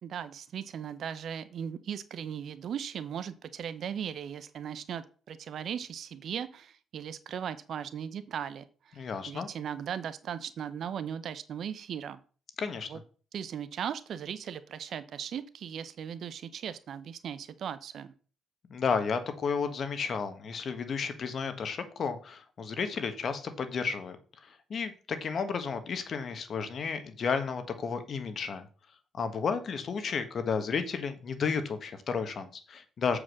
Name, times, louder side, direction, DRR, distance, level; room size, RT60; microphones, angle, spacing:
voice 1, 0.0-12.2 12.9-13.0 13.3-18.1, right 8 dB, 65° right, 13 dB, 0.8 m, -38 dB
voice 2, 9.0-9.5 12.6-12.9 18.7-24.2 24.4-28.7 29.1-33.2, left 5 dB, 55° left, 9 dB, 1.4 m, -32 dB
7.3 x 4.9 x 6.4 m, 0.39 s
cardioid pair, 90°, 0 cm